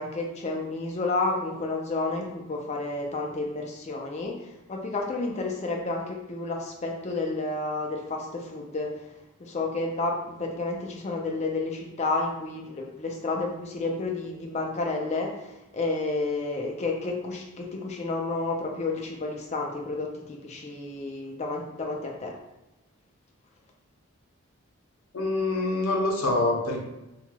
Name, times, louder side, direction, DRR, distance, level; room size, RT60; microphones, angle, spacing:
voice 1, 0.0-8.9 9.4-22.3, left 3 dB, 30° left, 1 dB, 0.4 m, -31 dB
voice 2, 25.1-26.8, left 2 dB, 65° left, -1 dB, 0.6 m, -25 dB
3.0 x 2.8 x 2.2 m, 0.95 s
head